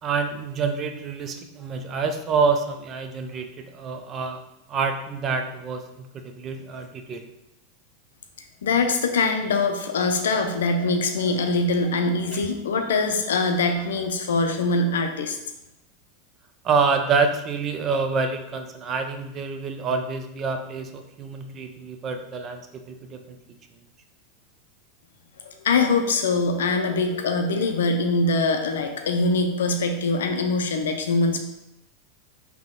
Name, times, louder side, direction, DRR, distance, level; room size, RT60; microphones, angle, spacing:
voice 1, 0.0-4.4 4.7-7.3 12.3-12.4 16.6-23.4, right 4 dB, 35° right, 6 dB, 0.5 m, -27 dB
voice 2, 8.6-15.4 25.4-31.4, left 3 dB, 80° left, 5 dB, 0.5 m, -23 dB
3.6 x 2.9 x 3.6 m, 0.87 s
hypercardioid pair, 100°, 0 cm